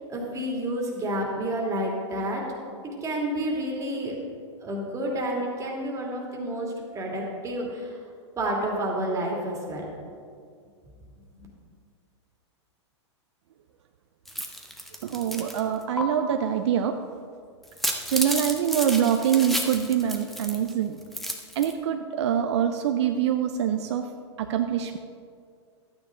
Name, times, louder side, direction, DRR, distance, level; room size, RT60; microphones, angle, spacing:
voice 1, 0.1-2.6 2.8-4.1 4.6-7.9 8.4-9.8 11.4-11.5, right 1 dB, 20° right, -1 dB, 2.5 m, -30 dB
sound 1, 14.3-15.6 16.0-16.1 17.6-20.7 21.0-21.7, equal, ahead, 1.0 m, -32 dB
voice 2, 15.0-17.0 18.1-21.0 21.6-24.1 24.4-25.0, right 9 dB, 65° right, 6 dB, 0.6 m, -25 dB
12.0 x 9.1 x 3.8 m, 2.2 s
hypercardioid pair, 115°, 15 cm